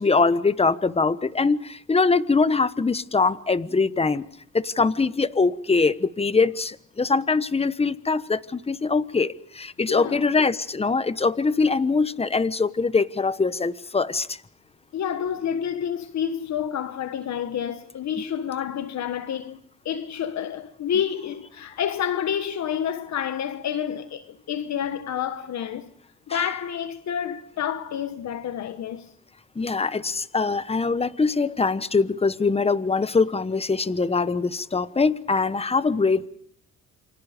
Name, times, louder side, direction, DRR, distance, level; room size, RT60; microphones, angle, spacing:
voice 1, 0.0-4.2 4.5-14.4 26.3-26.4 29.6-36.3, left 4 dB, 20° left, 1.2 m, -23 dB
voice 2, 9.9-10.3 14.9-25.9 26.3-29.1, left 9 dB, 65° left, 1.4 m, -29 dB
29.0 x 25.0 x 5.1 m
cardioid pair, 90°, 30 cm